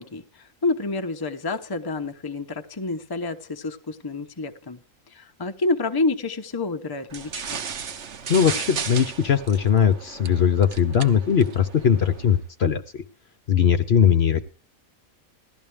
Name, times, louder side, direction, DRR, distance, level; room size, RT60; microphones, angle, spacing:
voice 1, 0.0-4.8 5.1-7.6, left 3 dB, 20° left, 0.8 m, -28 dB
sound 1, 7.1-12.4, right 6 dB, 55° right, 1.2 m, -35 dB
voice 2, 8.3-13.0 13.5-14.4, left 8 dB, 55° left, 0.9 m, -20 dB
16.5 x 12.5 x 3.4 m
omnidirectional pair, 1.4 m